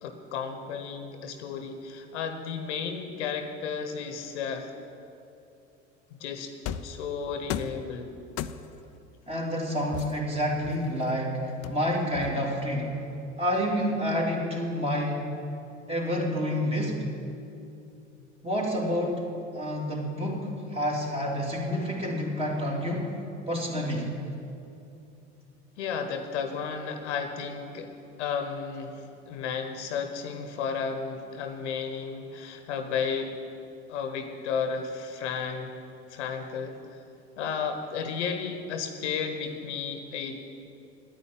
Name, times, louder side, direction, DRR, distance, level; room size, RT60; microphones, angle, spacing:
voice 1, 0.0-4.7 6.1-6.5 6.8-8.1 25.8-33.4 33.9-35.7 36.1-37.0 37.4-40.4, left 6 dB, 70° left, 7 dB, 1.2 m, -33 dB
sound 1, 6.7-7.0 7.5-7.9 8.4-8.9 9.9-11.1 11.6-12.6, left 10 dB, 40° left, 0.6 m, -36 dB
voice 2, 9.3-13.0 13.4-15.3 15.9-17.0 18.4-19.2 19.5-23.2 23.5-24.1, equal, 15° right, -2 dB, 3.1 m, -28 dB
10.0 x 9.6 x 9.1 m, 2.7 s
figure-of-eight pair, 65°, 36 cm